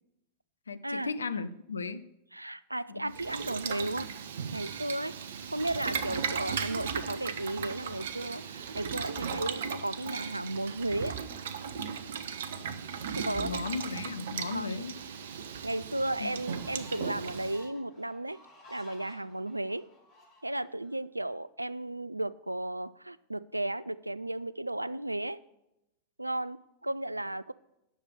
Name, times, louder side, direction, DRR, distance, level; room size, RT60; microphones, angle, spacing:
voice 1, 0.7-2.0 2.9-3.1 13.3-15.0 16.2-16.4 16.9-17.1, left 4 dB, 75° left, 14 dB, 0.5 m, -36 dB
voice 2, 2.3-4.1 4.5-5.2 5.5-11.1 13.1-13.6 14.5-14.8 15.6-18.4 18.7-19.9 20.4-25.4 26.2-27.5, right 1 dB, 85° right, 19 dB, 0.3 m, -34 dB
Boiling, 3.1-17.7, right 7 dB, 60° right, 0.7 m, -37 dB
sound 1, 16.2-20.9, left 2 dB, 35° left, 4.9 m, -56 dB
10.0 x 6.6 x 6.5 m, 0.89 s
figure-of-eight pair, 90°, 0 cm